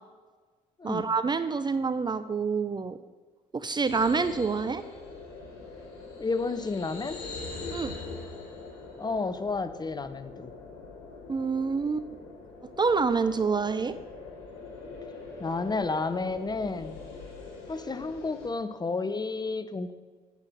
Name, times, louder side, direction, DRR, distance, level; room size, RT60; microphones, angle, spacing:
voice 1, 0.8-3.0 3.5-4.8 7.7-8.0 11.3-12.1 12.8-13.9, right 4 dB, 25° right, 12 dB, 0.5 m, -27 dB
sound 1, 3.8-18.5, left 3 dB, 75° left, 1.9 m, -43 dB
voice 2, 6.2-7.2 9.0-10.5 15.4-17.0 17.7-19.9, left 3 dB, 25° left, 12 dB, 0.6 m, -31 dB
8.2 x 5.6 x 6.6 m, 1.4 s
hypercardioid pair, 50°, 18 cm